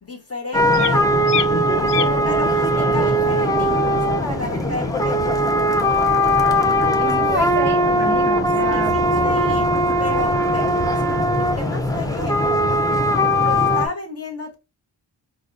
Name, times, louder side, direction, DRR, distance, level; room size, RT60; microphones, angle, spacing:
voice 1, 0.0-1.1 1.9-5.4 8.7-9.7 10.0-11.1 11.4-12.4 13.4-14.6, left 3 dB, 35° left, 0.7 m, -32 dB
sound 1, 0.5-13.9, equal, 10° left, 0.3 m, -19 dB
sound 2, 0.7-1.0 1.3-1.5 1.9-2.1 3.5-3.6 4.4-5.4 6.1-6.3, left 10 dB, 65° left, 0.5 m, -29 dB
voice 2, 7.0-9.0 9.4-9.6, right 2 dB, 25° right, 0.7 m, -28 dB
4.8 x 2.1 x 2.4 m
wide cardioid pair, 130°, 44 cm